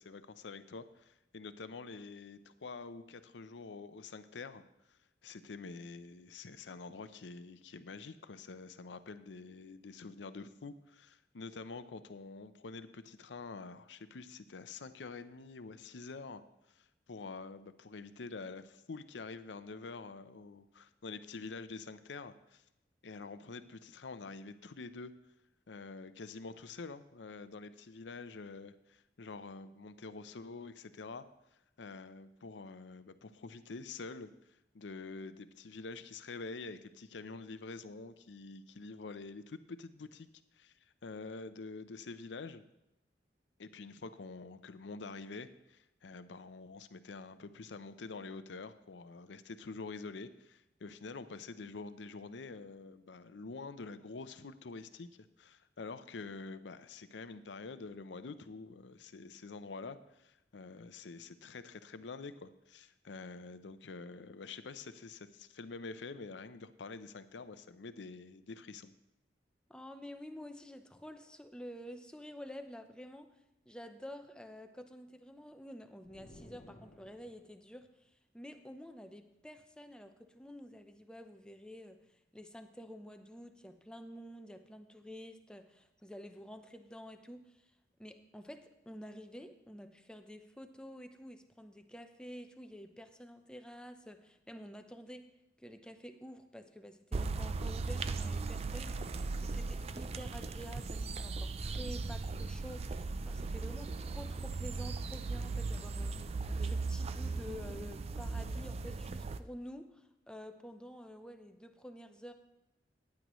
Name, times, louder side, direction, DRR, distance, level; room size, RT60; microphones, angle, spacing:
voice 1, 0.0-4.6 5.2-16.4 16.7-22.6 23.0-25.1 25.7-31.3 31.8-34.3 34.7-40.3 40.5-40.7 41.0-42.6 43.6-55.1 55.4-68.9, left 4 dB, 75° left, 12 dB, 0.6 m, -47 dB
voice 2, 69.7-73.3 73.7-82.0 82.3-87.6 88.0-95.3 95.6-106.2 106.6-112.3, equal, 5° left, 7 dB, 0.7 m, -49 dB
sound 1, 76.0-77.7, left 1 dB, 40° left, 0.9 m, -56 dB
sound 2, 97.1-109.4, right 3 dB, 35° right, 0.4 m, -38 dB
15.0 x 9.6 x 3.1 m, 0.89 s
head